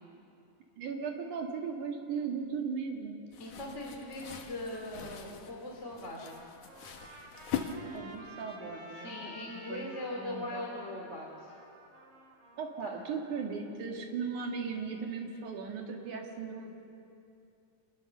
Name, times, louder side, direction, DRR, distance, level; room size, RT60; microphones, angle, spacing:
voice 1, 0.8-3.2 7.9-9.1 9.7-9.9 10.1-10.7 12.6-16.7, right 5 dB, 70° right, 1 dB, 3.5 m, -37 dB
sound 1, 3.3-8.3, left 8 dB, 70° left, 2.8 m, -42 dB
voice 2, 3.4-6.4 9.0-11.5 12.8-13.0, left 1 dB, 25° left, -1 dB, 2.5 m, -40 dB
Trumpet, 6.0-13.4, right 1 dB, 50° right, 3.0 m, -52 dB
26.0 x 20.5 x 6.9 m, 2.7 s
omnidirectional pair, 3.7 m